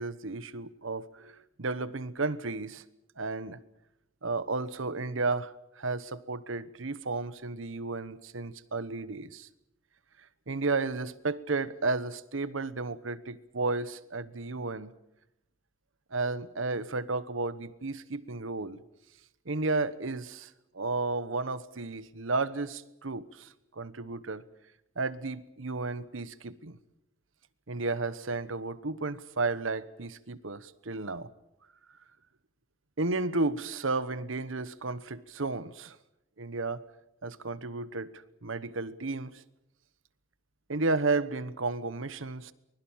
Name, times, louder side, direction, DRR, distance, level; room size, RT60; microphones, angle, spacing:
voice 1, 0.0-2.8 3.2-3.6 4.2-9.5 10.5-14.9 16.1-18.8 19.5-24.4 25.0-26.8 27.7-31.3 33.0-36.0 36.4-36.8 37.2-39.4 40.7-42.5, right 3 dB, 70° right, 1.1 m, -33 dB
24.0 x 21.0 x 7.3 m
head